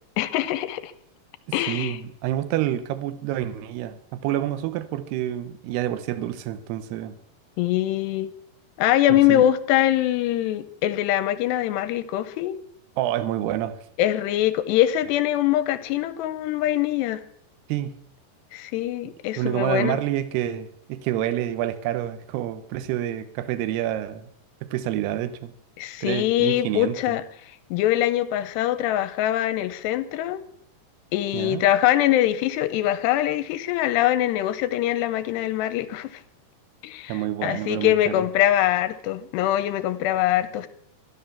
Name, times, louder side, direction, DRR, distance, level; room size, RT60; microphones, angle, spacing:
voice 1, 0.2-0.9 1.5-2.0 7.6-8.3 8.8-12.6 14.0-17.2 18.5-20.0 25.8-27.2 27.7-30.4 31.1-36.2 36.8-40.7, left 13 dB, 85° left, 13 dB, 3.0 m, -23 dB
voice 2, 1.5-7.2 9.1-9.5 13.0-13.8 17.7-18.0 19.4-24.3 24.6-25.5 26.0-27.2 31.3-31.6 37.1-38.2, right 12 dB, 80° right, 12 dB, 2.9 m, -28 dB
13.0 x 12.5 x 7.1 m, 0.67 s
omnidirectional pair, 4.8 m